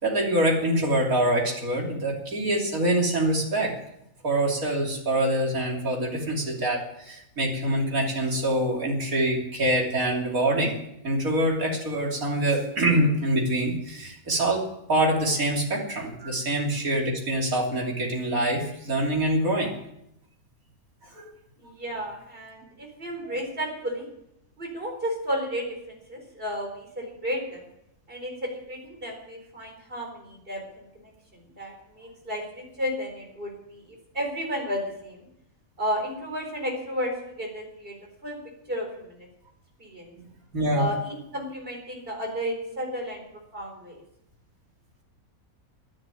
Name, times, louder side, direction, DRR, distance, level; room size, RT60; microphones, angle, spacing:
voice 1, 0.0-3.7 4.2-10.8 11.0-19.7 21.2-21.3 40.5-40.9, right 1 dB, 65° right, -1 dB, 3.5 m, -25 dB
voice 2, 21.6-24.1 24.6-27.6 28.1-35.2 35.8-37.1 37.4-38.0 38.2-38.4 38.7-39.3 39.8-40.1 40.7-43.2 43.5-44.0, equal, 35° right, 1 dB, 4.6 m, -33 dB
11.5 x 11.0 x 9.2 m, 0.80 s
omnidirectional pair, 1.6 m